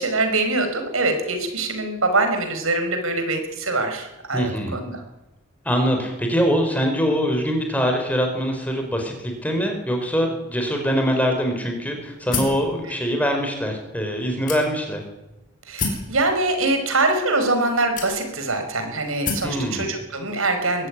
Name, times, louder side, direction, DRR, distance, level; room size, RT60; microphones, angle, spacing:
voice 1, 0.0-5.0 15.7-20.9, right 2 dB, 85° right, 6 dB, 5.3 m, -23 dB
voice 2, 4.3-4.8 5.6-15.0 19.4-19.9, equal, 5° left, 3 dB, 4.9 m, -23 dB
sound 1, 12.3-12.7 13.4-13.5 14.5-15.0 15.8-16.1 17.1-17.2 18.0-18.5 19.2-19.6, left 4 dB, 40° left, 4.9 m, -27 dB
22.5 x 15.0 x 9.7 m, 0.98 s
head